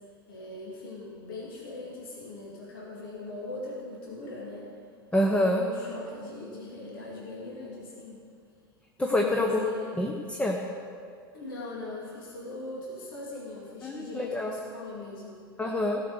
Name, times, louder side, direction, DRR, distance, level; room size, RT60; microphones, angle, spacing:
voice 1, 0.3-4.7 5.4-8.2 9.2-10.0 11.3-15.4, left 2 dB, 60° left, -4 dB, 2.7 m, -40 dB
voice 2, 5.1-5.6 9.0-9.6 10.0-10.6 13.8-14.5 15.6-16.0, left 1 dB, 10° left, 1 dB, 1.1 m, -26 dB
17.0 x 6.5 x 6.5 m, 2.3 s
figure-of-eight pair, 85°, 13 cm